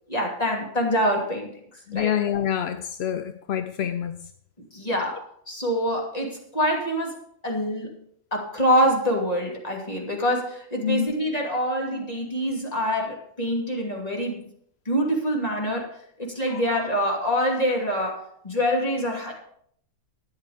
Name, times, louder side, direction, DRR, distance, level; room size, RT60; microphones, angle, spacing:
voice 1, 0.1-1.5 1.9-2.1 4.7-7.2 7.4-8.0 8.3-14.5 14.9-15.9 16.2-19.3, equal, 25° left, -1 dB, 2.8 m, -25 dB
voice 2, 1.9-4.3 10.8-11.1 16.5-16.6, left 10 dB, 60° left, 10 dB, 0.7 m, -27 dB
13.0 x 9.6 x 5.0 m, 0.67 s
omnidirectional pair, 1.5 m